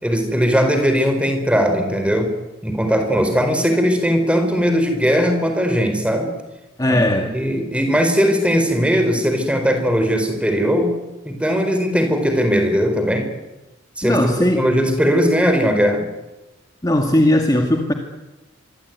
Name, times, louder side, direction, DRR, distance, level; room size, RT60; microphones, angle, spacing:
voice 1, 0.0-2.3 2.6-6.3 6.9-7.0 7.3-10.9 11.2-13.3 14.0-16.1, equal, 5° right, 6 dB, 4.5 m, -19 dB
voice 2, 6.8-7.3 14.0-15.0 16.8-17.9, left 1 dB, 15° left, 3 dB, 2.0 m, -18 dB
26.0 x 23.5 x 9.5 m, 1.0 s
head